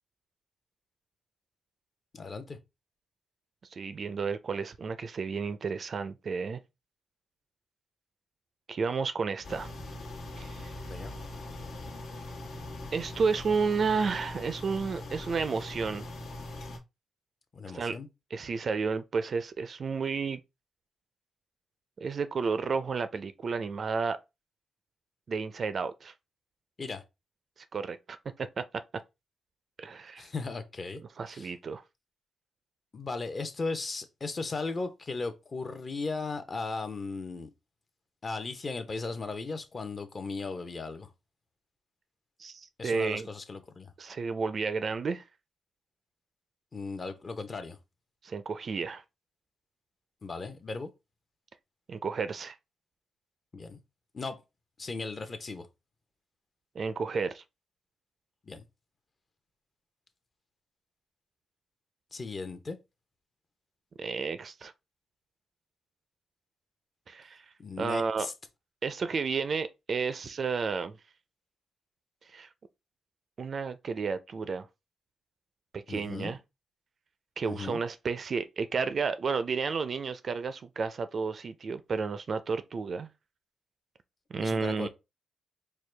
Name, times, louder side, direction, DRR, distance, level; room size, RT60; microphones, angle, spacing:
voice 1, 2.1-2.6 10.9-11.1 17.5-18.1 26.8-27.0 30.2-31.0 31.3-31.5 32.9-37.5 38.2-41.1 42.8-43.9 46.7-47.8 50.2-50.9 53.5-53.8 54.1-54.4 54.8-55.7 58.5-58.6 62.1-62.8 67.6-68.3 75.9-76.3 77.4-77.8 84.4-84.9, left 3 dB, 35° left, 0.7 m, -36 dB
voice 2, 3.7-6.6 8.7-9.7 10.4-10.7 12.9-16.0 17.7-18.0 18.3-20.4 22.0-24.2 25.3-26.1 27.7-28.6 29.8-30.3 31.2-31.8 42.4-43.3 44.0-45.2 48.2-49.0 51.9-52.6 56.8-57.4 64.0-64.7 67.1-67.4 67.8-68.3 68.8-71.0 72.3-72.5 73.4-74.7 75.7-76.4 77.4-83.1 84.3-84.9, right 5 dB, 45° right, 0.4 m, -32 dB
sound 1, 9.4-16.8, left 1 dB, 80° left, 1.3 m, -41 dB
4.6 x 2.2 x 3.2 m
cardioid pair, 105°, 0 cm